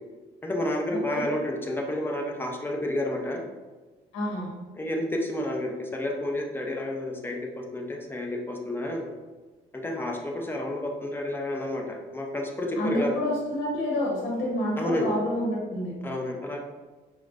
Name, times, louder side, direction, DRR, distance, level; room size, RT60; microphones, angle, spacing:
voice 1, 0.4-3.4 4.8-9.1 9.7-13.1 14.8-15.1 16.0-16.6, left 1 dB, 10° left, 1 dB, 0.6 m, -30 dB
voice 2, 4.1-4.5 12.8-15.9, left 1 dB, 70° left, -3 dB, 0.9 m, -28 dB
4.8 x 2.1 x 2.5 m, 1.3 s
supercardioid pair, 80°, 20 cm